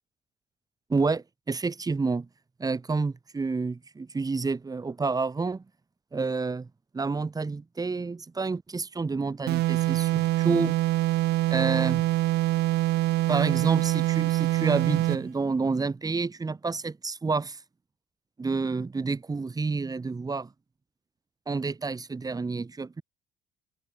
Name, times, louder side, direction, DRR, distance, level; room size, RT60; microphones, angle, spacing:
voice 1, 0.9-2.3 2.6-5.6 6.1-6.7 6.9-10.8 11.5-12.1 13.3-17.6 18.4-20.5 21.5-23.0, right 4 dB, 20° right, 3.7 m, -29 dB
sound 1, 9.5-15.3, right 17 dB, 80° right, 1.9 m, -25 dB
cardioid pair, 110°, 17 cm